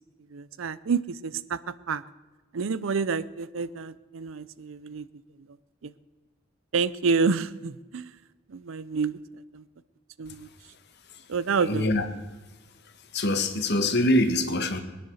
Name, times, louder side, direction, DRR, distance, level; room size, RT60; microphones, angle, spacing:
voice 1, 0.3-2.0 2.5-5.1 5.8-5.9 6.7-8.2 8.5-9.2 9.5-9.6 10.2-10.5 11.3-11.9, right 5 dB, 80° right, 16 dB, 0.5 m, -28 dB
voice 2, 11.6-12.0 13.1-14.8, left 1 dB, 55° left, 7 dB, 1.5 m, -24 dB
19.5 x 10.0 x 6.3 m, 1.2 s
head